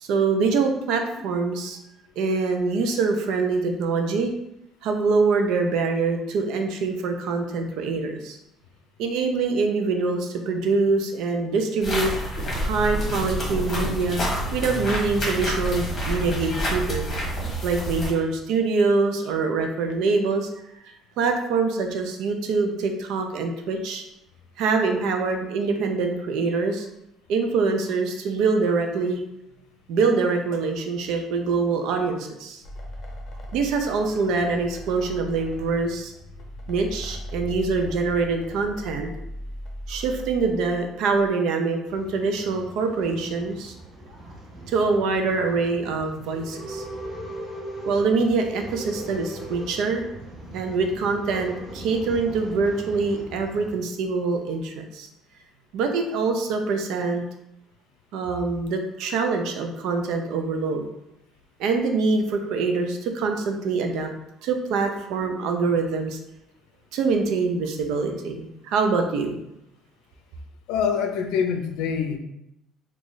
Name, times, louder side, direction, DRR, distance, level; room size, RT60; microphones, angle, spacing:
voice 1, 0.0-1.8 2.2-4.3 4.8-8.4 9.0-12.1 12.6-14.2 14.5-17.0 17.6-20.5 21.2-24.0 24.6-26.9 27.3-29.2 29.9-32.6 33.5-36.1 36.7-39.1 39.9-43.7 44.7-46.8 47.9-50.0 50.5-55.1 55.7-57.2 58.1-60.8 61.6-64.1 64.4-66.2 66.9-69.4, right 4 dB, 70° right, 4 dB, 0.5 m, -24 dB
sound 1, 11.8-18.1, equal, 25° left, 1.4 m, -28 dB
sound 2, 32.6-41.3, equal, 45° left, 0.7 m, -38 dB
Male speech man speaking / Chatter / Rattle, 41.8-53.8, right 1 dB, 30° right, 0.6 m, -39 dB
voice 2, 70.7-72.2, left 7 dB, 80° left, 5 dB, 0.5 m, -25 dB
3.1 x 2.4 x 3.9 m, 0.82 s
cardioid pair, 145°, 0 cm